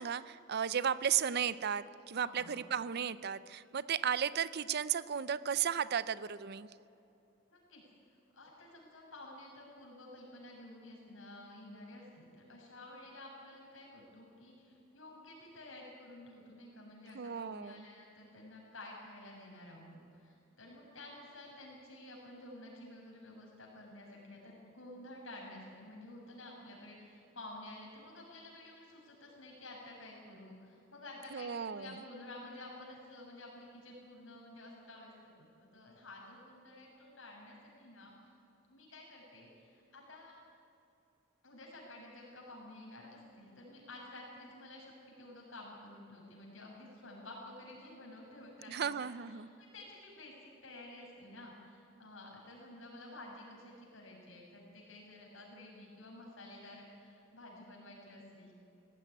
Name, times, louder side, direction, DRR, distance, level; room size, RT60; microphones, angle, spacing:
voice 1, 0.0-6.7 17.1-17.8 31.3-31.9 48.7-49.5, right 8 dB, 55° right, 18 dB, 0.5 m, -34 dB
voice 2, 2.1-2.6 7.5-7.8 8.3-35.1 35.4-38.1 38.7-40.4 41.4-58.6, left 1 dB, 75° left, -1 dB, 6.5 m, -51 dB
18.5 x 15.5 x 9.9 m, 2.8 s
head